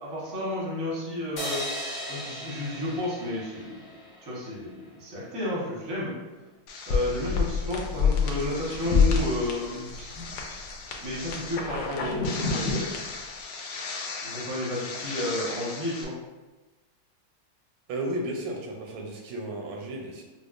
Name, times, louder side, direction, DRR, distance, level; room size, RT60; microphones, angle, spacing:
voice 1, 0.0-1.7 2.1-3.8 4.2-6.1 6.9-10.3 11.0-12.8 14.2-16.1, left 1 dB, 20° right, -7 dB, 0.6 m, -32 dB
sound 1, 1.4-4.7, equal, 40° left, 0.9 m, -37 dB
sound 2, 6.7-16.0, left 5 dB, 75° left, 1.1 m, -29 dB
voice 2, 17.9-20.2, right 1 dB, 80° right, 0 dB, 1.4 m, -33 dB
5.1 x 2.0 x 2.5 m, 1.2 s
omnidirectional pair, 2.3 m